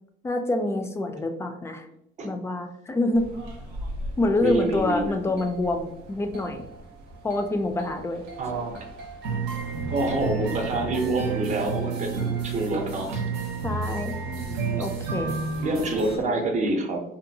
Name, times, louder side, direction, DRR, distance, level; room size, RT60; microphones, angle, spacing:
voice 1, 0.2-1.9 2.2-3.3 4.2-6.6 7.2-8.2 13.6-14.2 14.8-15.4, left 2 dB, 15° left, 6 dB, 0.3 m, -26 dB
sound 1, 3.1-16.2, right 4 dB, 85° right, 0.7 m, -33 dB
voice 2, 4.4-5.1 8.4-8.8 9.9-13.2 14.3-14.9 15.6-17.0, right 2 dB, 45° right, 2 dB, 0.6 m, -27 dB
2.6 x 2.3 x 2.6 m, 0.78 s
cardioid pair, 110°, 17 cm